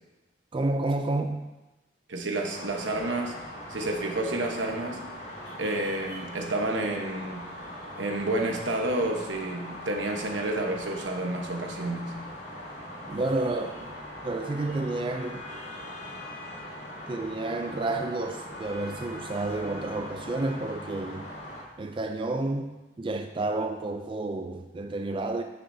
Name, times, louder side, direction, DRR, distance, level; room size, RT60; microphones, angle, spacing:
voice 1, 0.5-1.5 13.1-13.9 14.2-15.5 17.1-21.3 21.8-25.4, right 2 dB, 25° right, 0.3 m, -30 dB
voice 2, 2.1-3.3 3.7-5.0 5.6-7.5 8.0-12.1, right 2 dB, 90° right, 1.1 m, -30 dB
sound 1, 2.5-21.6, left 1 dB, 75° left, 2.6 m, -41 dB
9.2 x 6.8 x 2.7 m
head